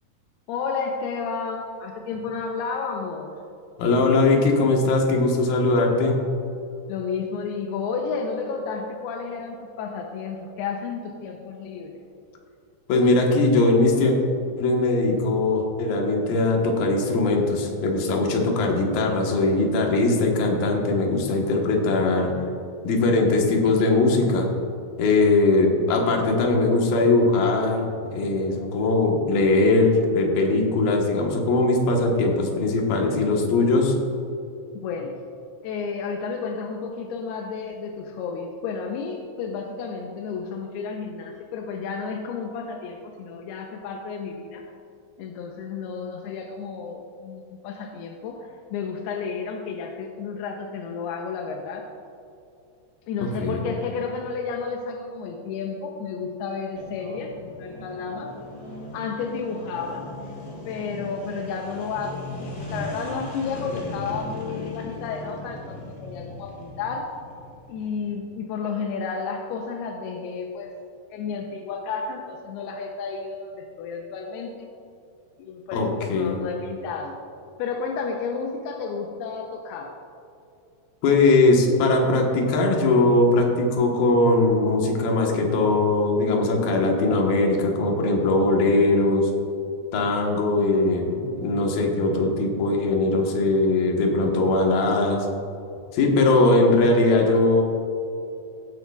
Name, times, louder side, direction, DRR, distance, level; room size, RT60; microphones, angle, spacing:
voice 1, 0.5-3.4 6.9-12.0 34.7-35.2 35.6-44.7 45.2-51.9 53.1-58.3 58.9-60.1 60.7-67.1 67.7-70.7 71.1-74.7 75.4-77.2 77.6-79.9, left 5 dB, 85° left, 2 dB, 2.6 m, -32 dB
voice 2, 3.8-6.2 12.9-14.2 14.6-22.3 22.8-24.5 25.0-33.9 53.2-53.7 75.7-76.4 81.0-89.3 89.9-95.3 95.9-97.6, left 2 dB, 70° left, 1 dB, 2.9 m, -20 dB
sound 1, 56.7-68.1, left 2 dB, 35° left, 0.8 m, -38 dB
17.0 x 9.1 x 2.4 m, 2.6 s
omnidirectional pair, 4.8 m